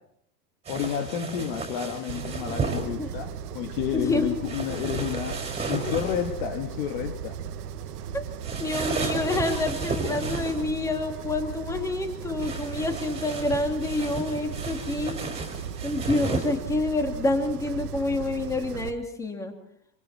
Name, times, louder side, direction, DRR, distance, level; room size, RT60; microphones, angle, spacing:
voice 1, 0.7-5.4 5.7-7.4, left 9 dB, 40° left, 7 dB, 1.9 m, -30 dB
sound 1, 0.7-2.9 4.4-6.3 8.4-10.7 12.4-16.6, right 3 dB, 15° right, 4.7 m, -33 dB
sound 2, 2.1-18.9, right 8 dB, 80° right, 1.8 m, -37 dB
voice 2, 3.9-4.3 8.1-8.3 8.6-15.2 15.8-19.5, left 2 dB, 5° left, 5 dB, 2.6 m, -28 dB
27.5 x 26.5 x 4.4 m, 0.69 s
supercardioid pair, 170°, 46 cm